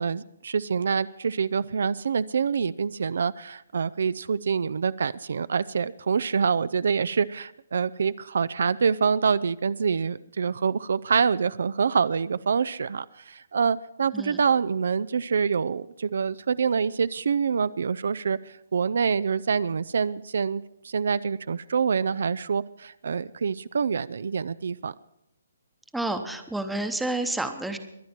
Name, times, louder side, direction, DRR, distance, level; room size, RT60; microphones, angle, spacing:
voice 1, 0.0-24.9, right 6 dB, 65° right, 17 dB, 0.4 m, -26 dB
voice 2, 25.9-27.8, right 2 dB, ahead, 7 dB, 0.9 m, -29 dB
23.0 x 9.2 x 4.4 m, 0.82 s
hypercardioid pair, 160°, 0 cm